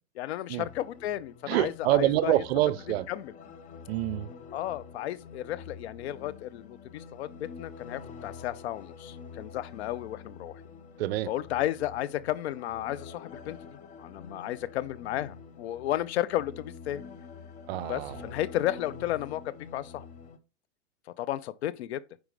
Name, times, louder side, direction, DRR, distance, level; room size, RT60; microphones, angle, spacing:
voice 1, 0.2-2.4 3.1-3.3 4.5-10.6 11.3-17.0 17.9-20.1 21.2-22.0, left 13 dB, 60° left, 0.6 m, -33 dB
sound 1, 0.6-20.4, left 6 dB, 20° left, 0.6 m, -47 dB
voice 2, 1.5-3.1 3.9-4.3 11.0-11.3 17.7-18.2, right 15 dB, 55° right, 0.6 m, -26 dB
9.0 x 4.7 x 3.3 m
hypercardioid pair, 115°, 37 cm